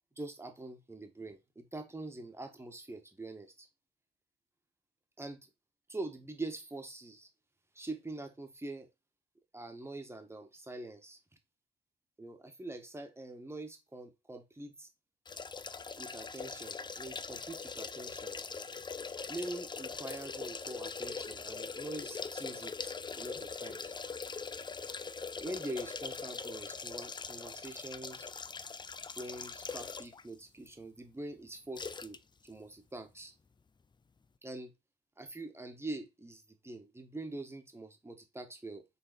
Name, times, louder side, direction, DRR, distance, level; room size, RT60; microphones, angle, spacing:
voice 1, 0.2-3.7 5.2-5.5 5.9-7.3 7.7-8.9 9.5-11.2 12.2-14.9 15.9-18.4 19.3-23.9 25.4-28.3 29.2-33.3 34.4-34.7 35.2-38.8, right 2 dB, 10° right, 1.6 m, -44 dB
sound 1, 15.3-30.2 30.7-30.8 31.8-32.2 32.5-32.6, left 5 dB, 20° left, 0.5 m, -42 dB
6.5 x 3.9 x 4.2 m
cardioid pair, 90°, 20 cm